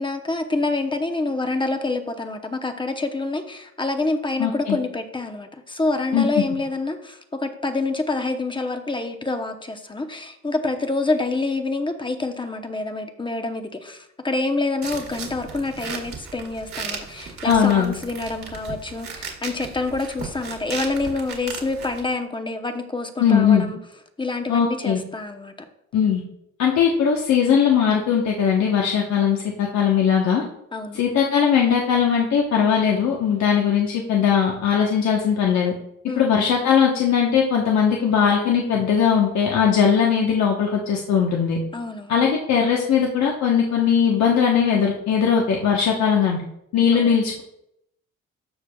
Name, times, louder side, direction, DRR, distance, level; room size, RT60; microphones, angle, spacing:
voice 1, 0.0-23.8 24.2-25.5 30.7-31.0 36.1-36.3 41.7-42.1 46.9-47.2, left 3 dB, 15° left, 5 dB, 0.8 m, -27 dB
voice 2, 4.4-4.8 6.1-6.4 17.4-17.9 23.2-23.6 24.5-25.0 25.9-26.2 26.6-30.4 30.9-35.7 36.2-41.6 42.1-46.4 46.7-47.4, left 7 dB, 65° left, -1 dB, 1.1 m, -19 dB
sound 1, 14.8-22.0, right 5 dB, 60° right, 2.1 m, -36 dB
13.5 x 5.0 x 2.3 m, 0.78 s
cardioid pair, 90°, 30 cm